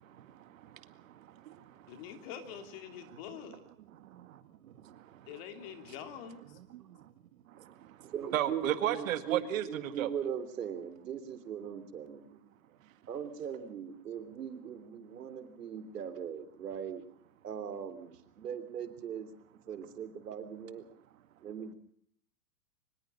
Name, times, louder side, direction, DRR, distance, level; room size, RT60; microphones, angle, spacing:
voice 1, 0.1-1.8 4.0-4.4 4.8-5.3 6.7-7.0 7.6-8.0 8.3-10.1, right 12 dB, 55° right, 11 dB, 2.0 m, -36 dB
voice 2, 1.9-3.6 5.3-6.6, left 8 dB, 40° left, 7 dB, 3.0 m, -45 dB
voice 3, 8.0-12.4 13.1-17.0 17.4-19.3 19.7-20.8 21.4-21.7, right 8 dB, 85° right, 10 dB, 3.3 m, -40 dB
23.5 x 20.5 x 5.5 m, 0.62 s
hypercardioid pair, 155°, 46 cm